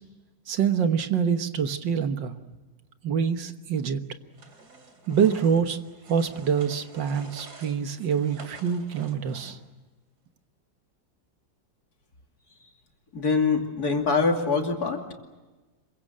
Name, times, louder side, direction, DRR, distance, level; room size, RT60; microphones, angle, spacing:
voice 1, 0.5-2.4 3.0-4.0 5.1-5.8 6.1-9.6, right 7 dB, 85° right, 8 dB, 2.0 m, -25 dB
sound 1, 4.3-9.8, right 2 dB, 60° right, 3.5 m, -48 dB
voice 2, 13.1-15.1, left 4 dB, 60° left, 2 dB, 3.2 m, -24 dB
27.0 x 23.5 x 7.5 m, 1.2 s
omnidirectional pair, 1.9 m